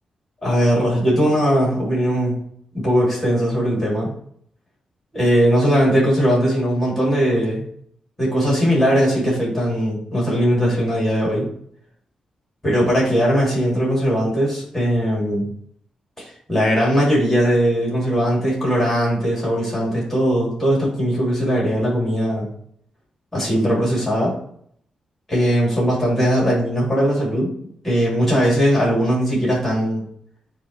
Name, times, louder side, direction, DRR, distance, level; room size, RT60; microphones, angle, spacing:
voice 1, 0.4-2.3 2.7-4.1 5.1-7.6 8.2-11.5 12.6-15.5 16.2-22.5 23.3-24.3 25.3-27.5 27.8-30.0, equal, 10° left, -5 dB, 3.1 m, -19 dB
8.8 x 3.0 x 4.6 m, 0.64 s
wide cardioid pair, 155°, 2 cm